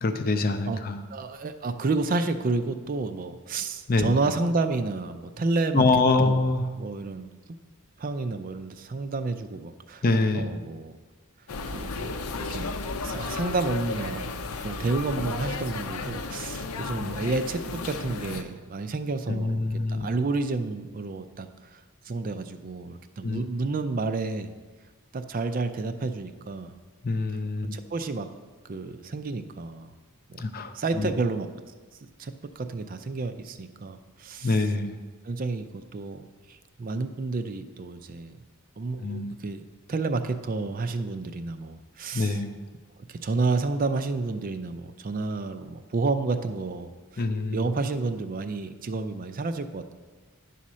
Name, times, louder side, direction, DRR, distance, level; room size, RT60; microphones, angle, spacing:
voice 1, 0.0-1.0 3.9-4.1 5.7-6.7 10.0-10.5 17.0-17.1 19.3-20.1 23.2-23.4 27.0-27.7 30.4-31.1 34.4-34.9 39.0-39.3 42.1-42.5 47.2-47.6, left 3 dB, 45° left, 7 dB, 0.6 m, -25 dB
voice 2, 1.1-5.8 6.2-6.5 6.8-7.3 8.0-10.0 10.3-11.0 11.7-12.2 12.5-12.7 13.0-14.3 14.6-24.5 25.1-26.7 27.6-28.3 28.7-29.9 30.3-30.4 30.7-31.5 32.2-34.6 35.2-36.2 36.5-38.4 38.8-42.4 43.1-49.9, right 3 dB, 40° right, 9 dB, 0.4 m, -30 dB
sound 1, 11.5-18.4, left 4 dB, 85° left, 0.6 m, -34 dB
10.0 x 4.2 x 6.2 m, 1.3 s
head